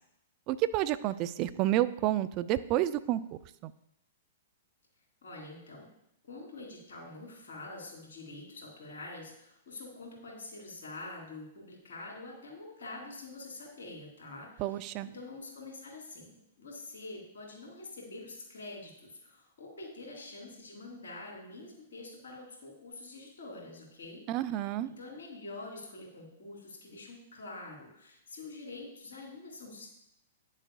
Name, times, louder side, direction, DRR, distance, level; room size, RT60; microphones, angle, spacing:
voice 1, 0.5-3.2 3.6-3.7 14.6-15.1 24.3-24.9, right 14 dB, 40° right, 15 dB, 0.4 m, -29 dB
voice 2, 5.2-5.9 6.3-24.3 24.6-29.9, left 2 dB, 70° left, -1 dB, 3.3 m, -46 dB
10.0 x 7.3 x 2.3 m, 0.77 s
hypercardioid pair, 115°, 0 cm